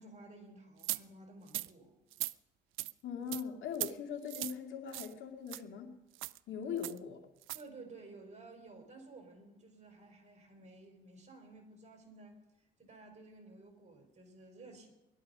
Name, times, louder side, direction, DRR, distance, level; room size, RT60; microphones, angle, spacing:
voice 1, 0.0-1.9 7.5-12.4 12.8-14.9, right 2 dB, 35° right, 4 dB, 4.5 m, -54 dB
sound 1, 0.8-1.0 1.5-1.7 2.1-2.3 2.8-2.9 3.3-3.4 3.7-3.9 4.3-4.6 4.9-5.1 5.5-5.6 6.2-6.4 6.8-7.0 7.4-7.6, right 17 dB, 90° right, 0.4 m, -38 dB
voice 2, 3.0-6.0 6.5-7.2, left 7 dB, 80° left, 3 dB, 2.4 m, -41 dB
20.5 x 12.0 x 5.5 m, 0.97 s
cardioid pair, 90°, 20 cm